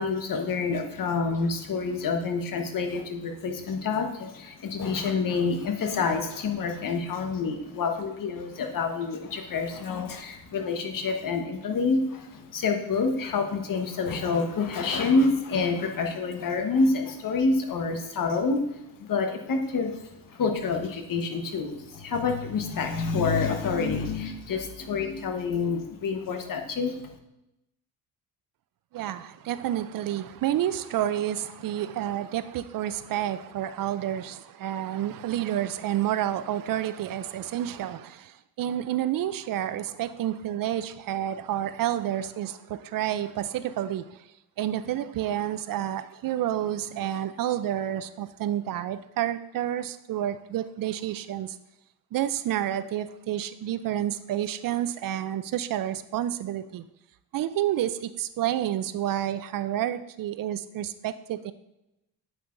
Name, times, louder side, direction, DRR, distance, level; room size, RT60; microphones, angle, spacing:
voice 1, 0.0-18.6 19.0-27.1, left 4 dB, 55° left, 1.2 m, -27 dB
voice 2, 28.9-38.3 38.6-44.0 44.6-51.5 52.1-56.8 57.3-61.5, right 12 dB, 55° right, 0.5 m, -29 dB
8.1 x 5.7 x 2.6 m
supercardioid pair, 70°, 40 cm